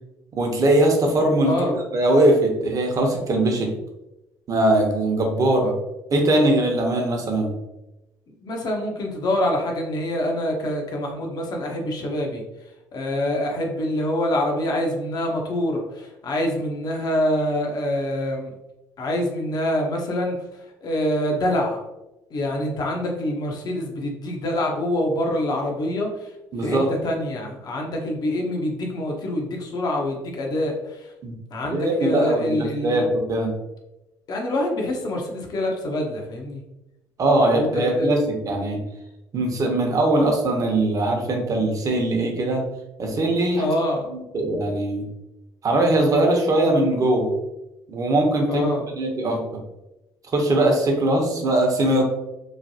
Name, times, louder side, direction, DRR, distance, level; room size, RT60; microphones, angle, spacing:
voice 1, 0.3-3.7 4.5-5.7 6.1-7.5 26.5-26.9 31.2-31.3 31.7-33.5 37.2-38.8 39.3-42.6 43.0-43.7 44.1-45.1 45.6-47.3 47.9-48.6 49.0-49.4 50.3-52.0, right 1 dB, 40° right, 2 dB, 0.8 m, -21 dB
voice 2, 1.4-1.8 5.6-5.7 8.4-12.4 12.9-18.5 19.0-21.8 22.3-26.3 26.6-31.1 31.5-33.1 34.3-36.6 37.4-38.2 43.5-44.1 48.5-48.9, left 1 dB, 50° left, 1 dB, 0.8 m, -25 dB
3.2 x 2.2 x 2.7 m, 0.96 s
hypercardioid pair, 60°, 9 cm